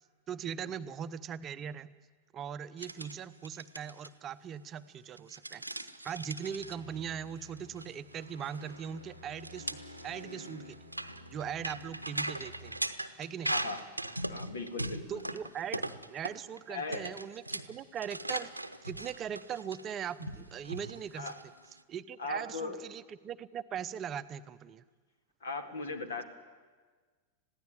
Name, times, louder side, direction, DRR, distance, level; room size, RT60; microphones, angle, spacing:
voice 1, 0.3-1.9 2.3-9.8 10.0-10.8 11.3-12.8 13.2-13.5 15.1-15.8 16.1-18.5 18.8-21.3 21.9-24.8, right 8 dB, 30° right, 12 dB, 0.7 m, -40 dB
sound 1, 2.8-3.1 3.4-4.1 5.2-6.7 7.6-7.9 8.1-8.2 8.5-8.6 9.4-16.6 16.9-21.8, right 1 dB, 85° right, 0.8 m, -39 dB
sound 2, 6.4-12.7, left 1 dB, 85° left, 1.9 m, -51 dB
voice 2, 13.5-13.9 14.3-15.2 16.7-17.1 21.2-21.4 22.2-22.8 25.4-26.2, left 3 dB, 65° left, 9 dB, 2.0 m, -38 dB
21.0 x 15.5 x 9.1 m, 1.4 s
figure-of-eight pair, 90°, 0 cm